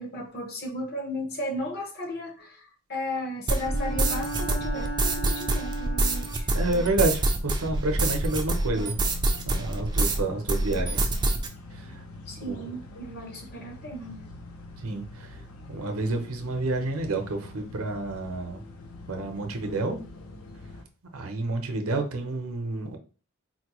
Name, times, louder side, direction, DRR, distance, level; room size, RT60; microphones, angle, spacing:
voice 1, 0.0-6.5 12.3-14.2, left 1 dB, 45° left, 2 dB, 0.8 m, -35 dB
Bowed string instrument, 3.5-6.6, right 2 dB, 60° left, 1.2 m, -36 dB
sound 1, 3.5-10.2 10.5-11.5, right 2 dB, 20° right, 0.4 m, -26 dB
sound 2, 5.8-20.8, left 2 dB, 75° left, 0.7 m, -45 dB
voice 2, 6.5-9.0 9.4-11.2 11.7-12.0 12.4-12.7 14.8-15.4 15.7-18.6 19.1-20.0 21.1-23.0, right 2 dB, 75° right, 5 dB, 0.7 m, -29 dB
4.1 x 2.2 x 3.0 m, 0.35 s
head